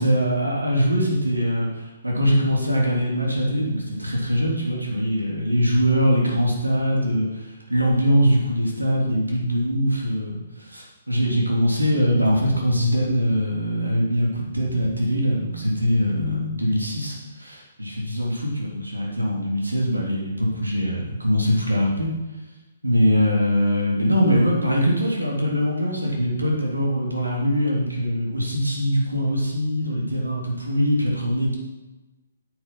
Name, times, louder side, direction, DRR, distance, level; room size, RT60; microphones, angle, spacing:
voice 1, 0.0-22.1 22.8-31.6, equal, 80° right, -3 dB, 3.3 m, -22 dB
9.1 x 8.1 x 5.9 m, 1.1 s
figure-of-eight pair, 130°, 0 cm